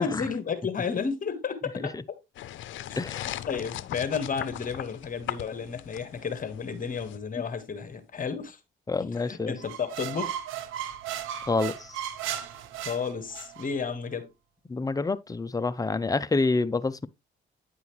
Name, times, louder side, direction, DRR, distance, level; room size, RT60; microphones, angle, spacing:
voice 1, 0.0-1.9 2.9-3.0 3.5-8.6 9.0-10.3 12.8-14.3, left 6 dB, 45° left, 1.5 m, -32 dB
sound 1, 2.4-7.2, left 13 dB, 75° left, 0.6 m, -39 dB
voice 2, 3.0-3.3 8.9-9.5 11.5-12.0 14.7-17.1, left 3 dB, 20° left, 0.5 m, -28 dB
sound 2, 9.6-13.7, right 10 dB, 90° right, 1.0 m, -35 dB
9.5 x 5.5 x 3.1 m
cardioid pair, 90°, 20 cm